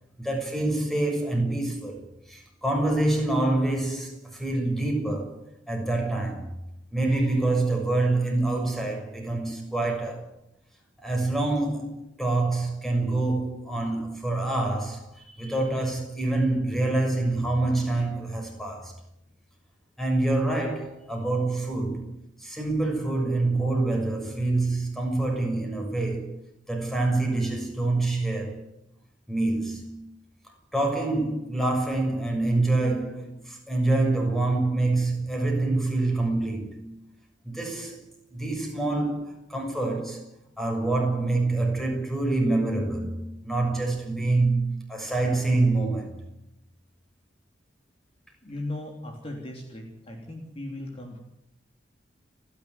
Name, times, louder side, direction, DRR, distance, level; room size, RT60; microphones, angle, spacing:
voice 1, 0.2-5.3 5.7-6.5 6.9-10.3 11.0-18.9 20.0-22.0 22.4-26.3 26.7-28.6 29.3-29.9 30.7-36.8 37.4-38.0 38.3-40.3 40.6-46.1, right 2 dB, ahead, 6.5 m, -26 dB
voice 2, 48.4-51.2, left 1 dB, 30° left, 3.3 m, -37 dB
30.0 x 11.5 x 9.5 m
head